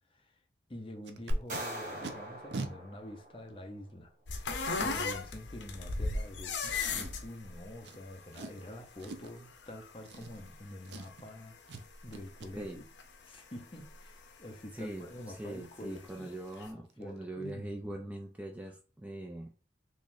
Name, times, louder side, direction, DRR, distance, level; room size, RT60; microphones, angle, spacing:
voice 1, 0.1-0.4 0.7-4.1 4.8-12.9 13.2-16.4 16.6-18.1, left 1 dB, 30° left, 0.6 m, -47 dB
Packing tape duct tape, 1.0-1.6 2.0-2.1 2.5-2.7 3.5-3.6 6.9-7.4 7.8-8.0 8.3-8.6 9.0-9.4 10.0-10.6 10.8-11.3 11.7-11.8 12.1-12.5 15.5-15.6 16.0-16.1 16.5-16.6 16.9-17.2 17.4-17.5, right 3 dB, 65° right, 0.5 m, -43 dB
sound 1, 1.3-3.7, equal, 40° right, 1.3 m, -39 dB
sound 2, 4.3-12.7 13.0-14.6 15.1-16.3 16.6-16.7, left 3 dB, 75° left, 0.6 m, -37 dB
voice 2, 14.7-19.5, right 1 dB, 10° right, 0.3 m, -42 dB
3.9 x 3.0 x 2.6 m
head